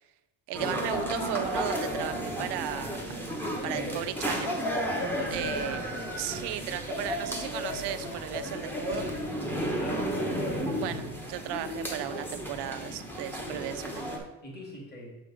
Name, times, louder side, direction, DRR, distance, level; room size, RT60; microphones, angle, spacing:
sound 1, 0.5-14.2, equal, 5° left, 0.9 m, -33 dB
voice 1, 0.5-3.2 3.6-4.6 5.3-9.1 10.8-14.3, right 12 dB, 85° right, 11 dB, 0.6 m, -36 dB
voice 2, 5.1-5.4 9.5-10.2 13.4-13.9 14.4-15.2, left 1 dB, 25° left, -3 dB, 1.9 m, -43 dB
7.0 x 3.8 x 5.0 m, 1.1 s
cardioid pair, 155°, 39 cm